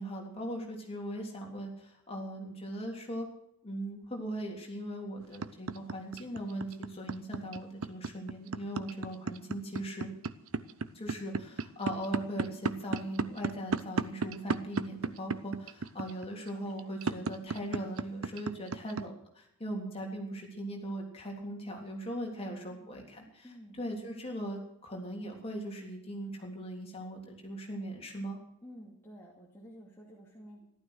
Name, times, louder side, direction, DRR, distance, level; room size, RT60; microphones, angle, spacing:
voice 1, 0.0-3.3 3.6-10.1 10.9-23.5 23.8-28.4, right 1 dB, 25° left, 0 dB, 3.4 m, -39 dB
sound 1, 5.2-19.0, right 4 dB, 70° right, 0.8 m, -33 dB
voice 2, 22.3-23.0 23.4-23.8 28.6-30.7, equal, 10° left, -4 dB, 2.5 m, -51 dB
14.5 x 12.5 x 6.5 m, 0.80 s
head